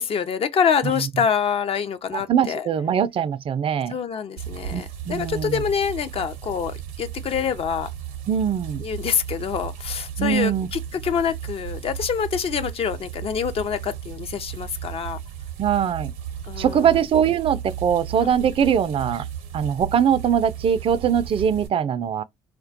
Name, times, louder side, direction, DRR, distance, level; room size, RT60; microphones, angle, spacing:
voice 1, 0.0-2.7 3.9-7.9 8.8-15.2 16.5-16.9 18.2-18.4, left 7 dB, 50° left, 0.5 m, -26 dB
voice 2, 2.1-3.9 4.7-5.6 8.3-8.8 10.2-10.7 15.6-16.1 16.6-19.3 19.5-22.2, right 8 dB, 45° right, 0.4 m, -22 dB
sound 1, 4.4-21.7, right 9 dB, 80° right, 0.7 m, -35 dB
2.3 x 2.2 x 2.5 m
hypercardioid pair, 55°, 13 cm